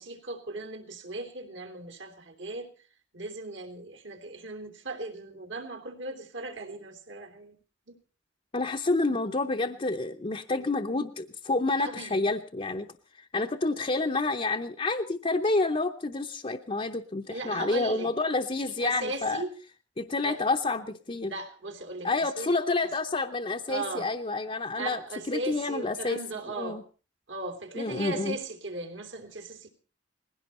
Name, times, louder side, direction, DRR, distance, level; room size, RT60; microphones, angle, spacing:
voice 1, 0.0-2.7 3.1-7.6 7.9-8.0 11.8-12.2 17.3-18.1 18.8-19.5 20.2-20.4 21.3-22.5 23.7-24.1 24.7-26.8 27.3-29.7, right 2 dB, 70° right, 4 dB, 3.2 m, -37 dB
voice 2, 8.5-12.9 13.2-19.4 20.0-21.3 22.0-25.0 25.3-26.2 26.6-26.8 27.8-28.4, left 3 dB, 30° left, 3 dB, 0.7 m, -29 dB
20.5 x 16.5 x 4.3 m, 0.37 s
head